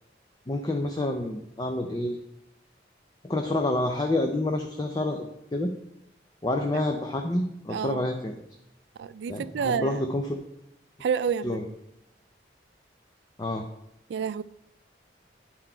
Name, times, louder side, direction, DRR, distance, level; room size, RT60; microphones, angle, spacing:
voice 1, 0.5-2.2 3.2-5.7 6.4-8.3 9.3-10.4 11.4-11.7 13.4-13.6, left 1 dB, 20° left, 4 dB, 0.5 m, -28 dB
voice 2, 7.7-8.0 9.0-10.0 11.0-11.6 14.1-14.4, right 7 dB, 70° right, 17 dB, 0.3 m, -29 dB
11.0 x 4.0 x 4.4 m, 0.85 s
head